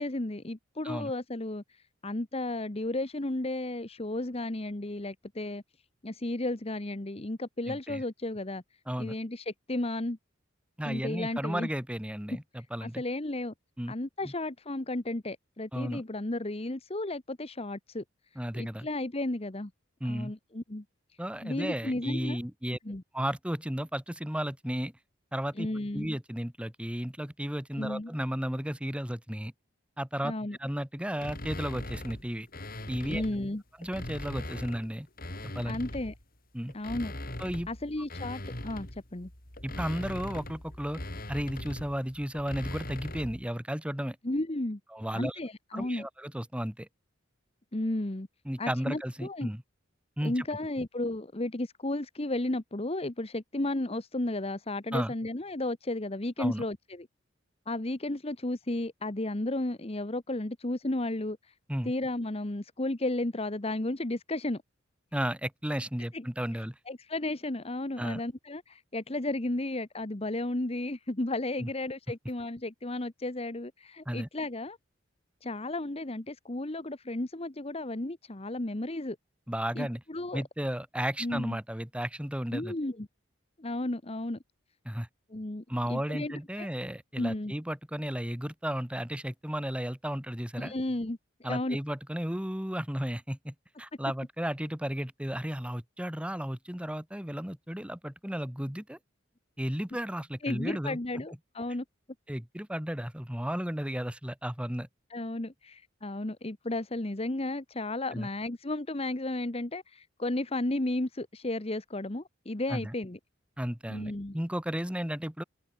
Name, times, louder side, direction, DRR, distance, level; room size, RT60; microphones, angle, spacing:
voice 1, 0.0-5.6 6.0-8.6 9.0-10.2 10.9-11.7 12.8-13.5 13.9-18.0 18.3-19.7 20.0-20.8 21.1-22.4 22.8-23.0 25.5-26.1 27.7-28.1 30.2-30.6 33.0-33.6 35.7-36.1 36.7-37.1 37.7-39.3 44.2-44.8 45.1-46.1 47.7-48.3 48.6-49.5 50.2-57.1 57.7-61.5 61.8-64.6 66.1-66.2 66.9-74.8 75.4-79.2 79.7-80.4 81.2-81.6 82.5-83.1 83.6-84.4 85.3-86.7 87.2-87.5 90.6-91.8 100.4-101.8 105.1-113.2 113.9-114.4, left 1 dB, 30° left, 1.2 m, -33 dB
voice 2, 7.7-8.0 8.9-9.1 10.8-13.0 13.8-13.9 14.2-14.3 15.7-16.0 18.3-18.9 20.0-20.3 21.2-22.8 23.1-24.9 25.3-25.7 25.9-29.5 30.0-30.3 30.6-32.5 32.9-33.2 33.8-35.1 35.4-35.7 36.5-36.7 37.4-37.7 39.6-41.0 41.3-44.2 44.9-45.4 45.7-46.9 48.4-49.6 50.2-50.4 54.9-55.1 56.4-56.6 61.7-61.9 65.1-66.7 68.0-68.2 71.6-71.7 74.1-74.3 79.5-80.0 80.3-82.7 84.8-85.1 85.7-90.7 91.4-99.0 99.6-101.2 102.3-104.9 108.1-108.3 112.7-112.9 113.6-115.4, equal, 5° right, 1.4 m, -34 dB
sound 1, 31.2-33.4 33.8-36.2 36.7-43.4, left 1 dB, 45° left, 5.4 m, -40 dB
head